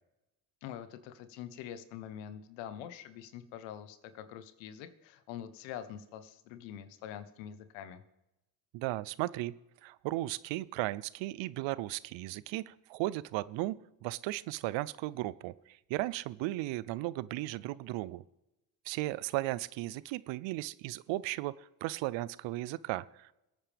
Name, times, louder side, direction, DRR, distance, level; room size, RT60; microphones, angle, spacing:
voice 1, 0.6-8.0, left 10 dB, 90° left, 11 dB, 1.1 m, -45 dB
voice 2, 8.7-9.6 9.8-13.8 14.0-18.2 18.8-23.3, right 17 dB, 80° right, 20 dB, 0.6 m, -36 dB
22.0 x 8.8 x 3.4 m, 0.94 s
supercardioid pair, 75°, 45 cm